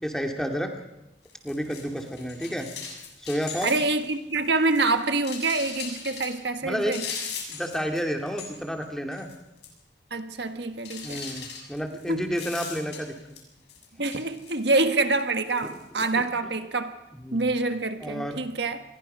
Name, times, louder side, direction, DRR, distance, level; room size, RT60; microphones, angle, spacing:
voice 1, 0.0-0.7 1.4-2.7 3.2-3.7 6.6-6.9 7.5-9.3 11.0-13.1 17.2-17.5 18.0-18.4, equal, 5° left, 2.3 m, -30 dB
sound 1, 1.2-4.1 4.4-6.3 6.9-8.0 8.3-8.8 9.1-9.3 9.6-9.7 10.8-13.4 13.7-14.9 15.5-16.0, left 6 dB, 65° left, 6.9 m, -39 dB
voice 2, 3.6-7.0 10.1-11.2 12.1-12.3 14.0-17.0 17.3-18.8, right 3 dB, 70° right, 1.7 m, -26 dB
27.5 x 21.5 x 5.6 m
head